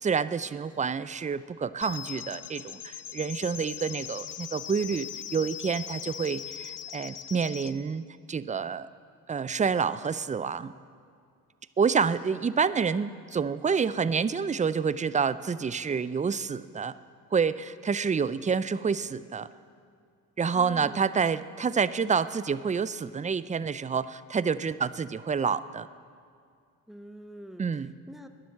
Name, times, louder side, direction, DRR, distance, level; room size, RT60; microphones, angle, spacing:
voice 1, 0.0-8.9 9.3-10.7 11.8-17.0 17.3-19.5 20.4-25.9 27.6-27.9, right 6 dB, 20° right, 16 dB, 0.5 m, -28 dB
sound 1, 1.8-7.7, left 11 dB, 65° left, 0.7 m, -40 dB
voice 2, 20.5-21.1 26.9-28.3, right 1 dB, ahead, 7 dB, 1.0 m, -46 dB
14.0 x 10.0 x 7.2 m, 2.2 s
supercardioid pair, 60°, 34 cm